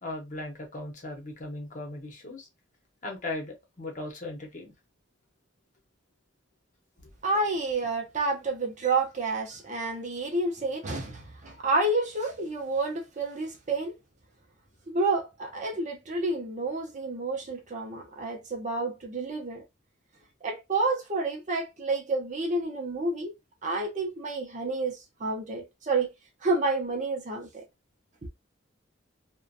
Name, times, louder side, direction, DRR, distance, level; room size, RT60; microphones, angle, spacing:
voice 1, 0.0-2.5 3.0-4.7, left 2 dB, 40° left, 0.8 m, -38 dB
voice 2, 7.2-13.9 14.9-19.6 20.4-23.3 23.6-26.1 26.4-27.6 28.2-28.3, right 2 dB, 40° right, 0.6 m, -29 dB
2.4 x 2.2 x 2.6 m
head